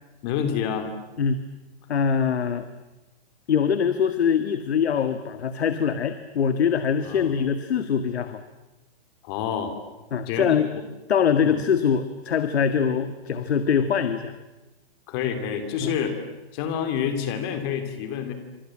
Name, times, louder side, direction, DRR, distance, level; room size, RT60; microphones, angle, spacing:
voice 1, 0.2-0.9 7.0-7.3 9.2-9.7 10.3-10.5 11.4-11.6 15.1-16.2 16.5-18.3, left 8 dB, 20° left, 7 dB, 2.8 m, -28 dB
voice 2, 1.9-2.7 3.5-8.4 10.1-10.7 11.1-14.3 15.8-15.9, left 7 dB, 75° left, 10 dB, 2.0 m, -23 dB
30.0 x 26.5 x 7.6 m, 1.1 s
hypercardioid pair, 180°, 33 cm